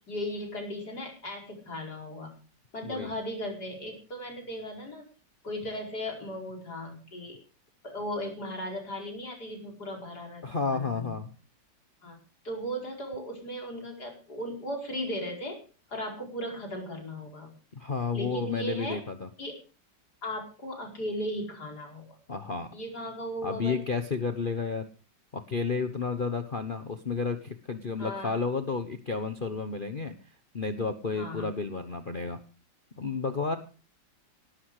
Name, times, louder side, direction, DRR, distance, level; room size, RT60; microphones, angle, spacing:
voice 1, 0.0-2.3 2.7-5.1 5.4-7.4 7.8-11.2 12.0-15.6 15.9-17.6 18.1-19.0 19.4-19.6 20.2-22.1 22.7-23.8 28.0-28.4 31.1-31.5, equal, 55° left, 1 dB, 5.5 m, -37 dB
voice 2, 2.8-3.1 10.4-11.3 17.8-19.3 22.3-22.7 23.4-24.9 25.3-30.1 30.5-32.4 33.0-33.6, left 4 dB, 35° left, 8 dB, 1.1 m, -31 dB
18.5 x 12.5 x 4.9 m, 0.37 s
omnidirectional pair, 2.0 m